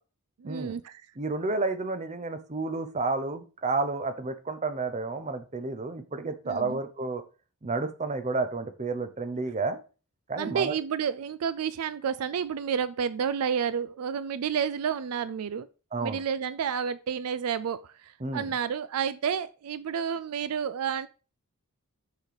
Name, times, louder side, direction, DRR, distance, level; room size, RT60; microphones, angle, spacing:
voice 1, 0.4-1.0 6.5-6.8 10.4-15.7 16.0-21.1, right 7 dB, 75° right, 0.4 m, -30 dB
voice 2, 1.2-7.2 7.6-9.8 10.3-10.7 15.9-16.2 18.2-18.5, right 3 dB, 30° right, 0.8 m, -31 dB
6.5 x 5.1 x 4.8 m
head